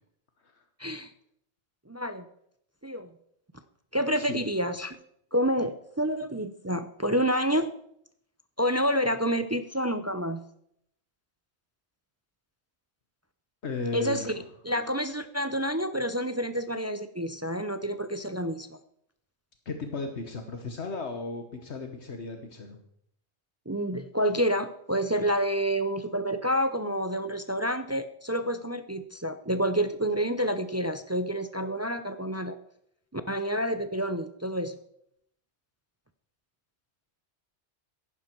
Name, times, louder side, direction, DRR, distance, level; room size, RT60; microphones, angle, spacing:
voice 1, 0.8-1.1 1.9-2.2 2.8-3.1 3.9-5.0 5.3-7.7 8.6-10.4 13.9-14.4 14.6-18.8 23.7-32.6 33.1-34.7, equal, 20° right, 11 dB, 0.4 m, -28 dB
voice 2, 13.6-14.4 19.6-22.8, left 3 dB, 75° left, 5 dB, 1.5 m, -35 dB
14.5 x 11.0 x 4.5 m, 0.72 s
omnidirectional pair, 1.2 m